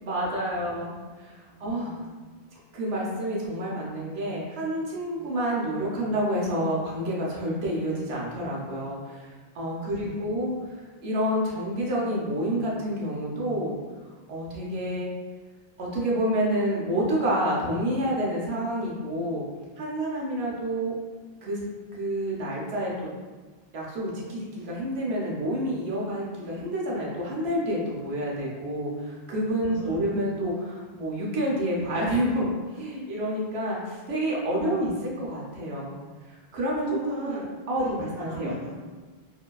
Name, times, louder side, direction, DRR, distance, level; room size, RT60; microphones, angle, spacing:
voice 1, 0.0-2.0 2.7-13.8 14.3-15.1 15.8-19.4 19.8-20.9 21.4-21.6 21.9-23.1 23.7-34.9 35.2-35.9 36.3-37.0 37.3-37.4 37.7-38.5, equal, 90° right, -4 dB, 0.9 m, -29 dB
voice 2, 1.5-2.4 5.1-5.3 9.8-10.6 29.7-30.4 34.5-35.2 36.9-38.9, right 1 dB, 25° right, -5 dB, 0.3 m, -40 dB
2.7 x 2.2 x 2.2 m, 1.3 s
omnidirectional pair, 1.0 m